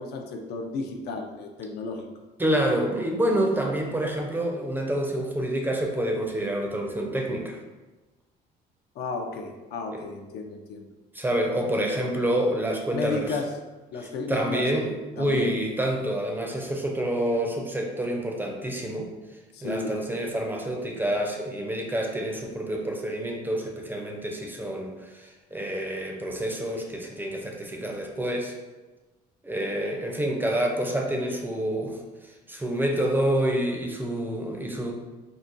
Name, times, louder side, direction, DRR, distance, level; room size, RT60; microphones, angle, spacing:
voice 1, 0.0-2.1 9.0-10.9 12.9-13.5 13.9-15.6 19.5-20.0, left 3 dB, 75° left, 3 dB, 0.4 m, -33 dB
voice 2, 2.4-7.6 9.9-10.0 11.1-13.4 14.0-19.1 19.6-28.5 29.4-32.0 32.5-34.9, right 1 dB, 10° right, 1 dB, 0.4 m, -28 dB
3.9 x 2.2 x 2.5 m, 1.2 s
cardioid pair, 110°, 17 cm